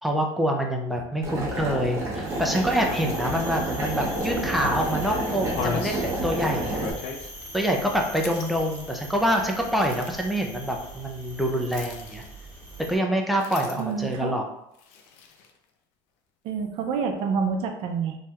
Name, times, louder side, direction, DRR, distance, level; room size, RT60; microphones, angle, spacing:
voice 1, 0.0-6.9 7.5-12.2 12.9-14.4, equal, ahead, 1 dB, 0.4 m, -26 dB
Boiling, 1.2-6.9, right 1 dB, 25° right, 0.8 m, -29 dB
sound 1, 2.2-13.0, right 1 dB, 25° left, 1.4 m, -42 dB
sound 2, 5.4-10.3 11.7-12.6 13.3-14.1 14.7-15.6, left 5 dB, 75° left, 0.5 m, -38 dB
voice 2, 13.8-14.3 16.4-18.2, right 6 dB, 55° right, 5 dB, 0.5 m, -27 dB
3.2 x 2.7 x 2.3 m, 0.81 s
cardioid pair, 140°, 10 cm